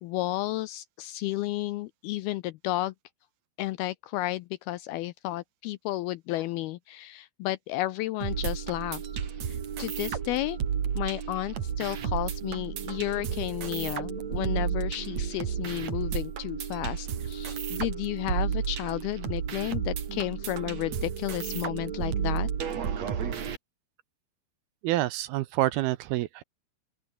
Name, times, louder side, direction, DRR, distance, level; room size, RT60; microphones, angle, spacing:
voice 1, 0.0-2.9 3.6-9.0 9.4-10.6 11.0-22.5, left 17 dB, 80° left, 2.3 m, -32 dB
sound 1, 8.2-23.6, right 7 dB, 45° right, 3.1 m, -32 dB
voice 2, 24.8-26.4, right 15 dB, 75° right, 2.4 m, -27 dB
open air
omnidirectional pair, 5.0 m